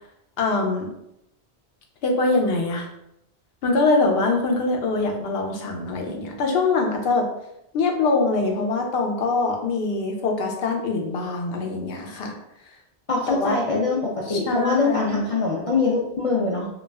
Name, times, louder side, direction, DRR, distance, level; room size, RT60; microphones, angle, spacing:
voice 1, 0.4-0.9 2.0-2.9 3.6-7.3 7.7-12.3 13.3-13.6 14.3-15.2, left 3 dB, 75° left, 2 dB, 0.8 m, -23 dB
voice 2, 13.1-16.7, left 3 dB, 55° left, -5 dB, 0.4 m, -23 dB
2.3 x 2.1 x 3.3 m, 0.82 s
omnidirectional pair, 1.0 m